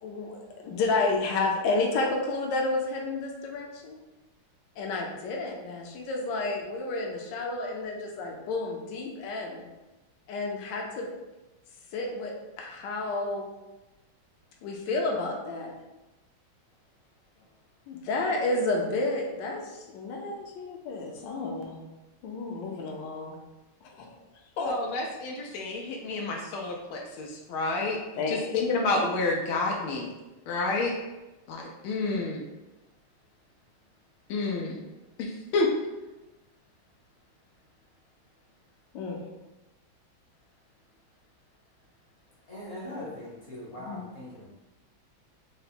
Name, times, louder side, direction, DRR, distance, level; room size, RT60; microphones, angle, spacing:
voice 1, 0.0-4.0 4.8-9.6 10.3-11.1 11.9-13.5 14.6-15.7 17.9-21.8 22.2-23.3 23.8-24.2 24.6-24.8 28.2-28.5 38.9-39.2, left 2 dB, 70° left, 0 dB, 1.2 m, -31 dB
voice 2, 24.6-28.0 28.3-30.1 30.5-30.9 31.5-32.5 34.3-34.9 35.2-35.7 43.9-44.0, left 3 dB, 85° left, -1 dB, 1.4 m, -29 dB
voice 3, 42.5-44.5, left 1 dB, 45° left, -6 dB, 1.0 m, -40 dB
3.9 x 2.2 x 4.1 m, 1.1 s
omnidirectional pair, 2.3 m